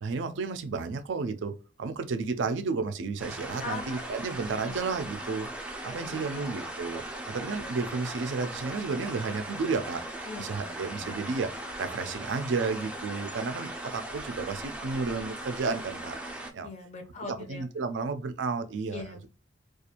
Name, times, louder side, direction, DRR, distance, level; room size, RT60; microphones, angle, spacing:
voice 1, 0.0-5.5 5.8-11.5 11.8-16.2 16.5-16.7 17.3-19.1, right 4 dB, 70° right, 0.4 m, -32 dB
sound 1, 3.2-16.5, right 1 dB, 5° right, 0.4 m, -39 dB
voice 2, 3.6-4.1 4.6-4.8 5.9-6.7 10.2-11.2 16.6-17.7 18.9-19.3, left 4 dB, 40° left, 0.6 m, -42 dB
2.5 x 2.3 x 2.8 m
head